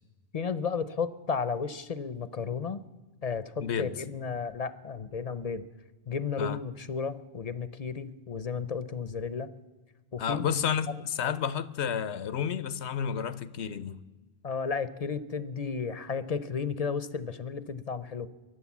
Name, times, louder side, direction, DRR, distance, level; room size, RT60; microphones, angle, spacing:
voice 1, 0.3-2.8 3.2-5.6 6.1-9.5 10.1-10.5 11.2-11.3 14.4-18.3, left 5 dB, 45° left, 0.6 m, -33 dB
voice 2, 10.2-14.0, left 8 dB, 90° left, 1.0 m, -31 dB
23.0 x 7.8 x 7.2 m
omnidirectional pair, 1.1 m